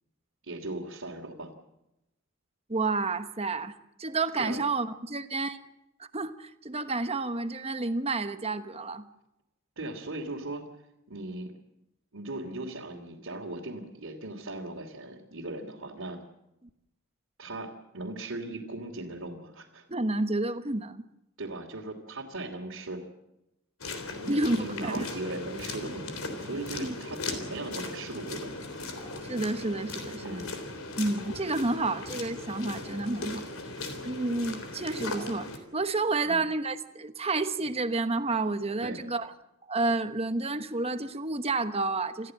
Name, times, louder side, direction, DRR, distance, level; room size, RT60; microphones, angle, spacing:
voice 1, 0.4-1.5 4.4-4.6 9.8-10.7 11.1-11.5 12.1-16.2 17.4-19.9 21.4-23.1 24.1-28.7 30.2-30.5 36.3-36.4 38.8-39.0, right 2 dB, 65° right, -4 dB, 2.8 m, -38 dB
voice 2, 2.7-3.7 4.0-5.6 6.1-9.1 19.9-21.0 24.3-25.1 26.8-26.9 29.2-30.2 31.0-33.4 34.0-39.3 39.7-42.3, right 3 dB, 30° right, 10 dB, 1.1 m, -30 dB
sound 1, 23.8-35.6, left 2 dB, 70° left, 3.6 m, -38 dB
28.0 x 14.5 x 7.6 m, 0.89 s
head